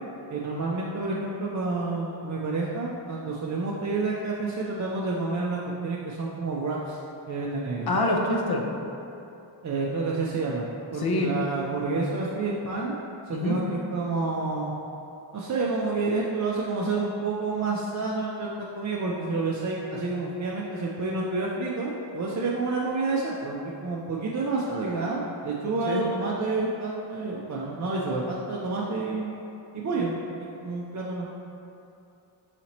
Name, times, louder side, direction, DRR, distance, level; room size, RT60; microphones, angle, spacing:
voice 1, 0.3-7.0 7.3-7.9 9.6-13.0 13.3-14.7 15.3-18.5 18.7-29.4 29.7-30.2 30.6-31.3, right 3 dB, 40° right, -4 dB, 0.4 m, -29 dB
voice 2, 7.9-8.6 11.0-11.3 13.3-13.6 25.9-26.0, left 2 dB, 50° left, 0 dB, 0.7 m, -25 dB
4.9 x 2.8 x 2.9 m, 2.8 s
cardioid pair, 50°, 48 cm